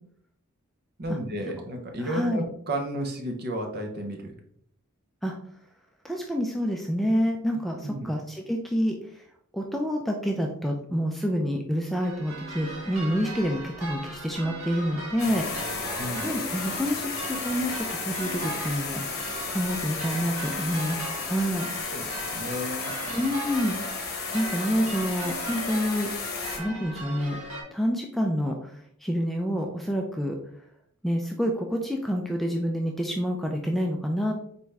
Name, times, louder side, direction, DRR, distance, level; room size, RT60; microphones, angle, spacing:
voice 1, 1.0-4.4 7.8-8.1 16.0-16.3 21.9-23.3, right 1 dB, 45° right, 3 dB, 0.8 m, -33 dB
voice 2, 2.0-2.4 5.2-5.4 6.0-9.2 9.5-21.7 23.1-23.8 24.3-26.1 26.6-27.4 27.7-30.4 31.0-34.3, equal, ahead, 0 dB, 0.3 m, -28 dB
sound 1, 12.0-27.6, right 2 dB, 90° right, 1.5 m, -38 dB
sound 2, 15.2-26.6, left 5 dB, 45° left, 0.9 m, -34 dB
4.1 x 3.5 x 3.3 m, 0.68 s
head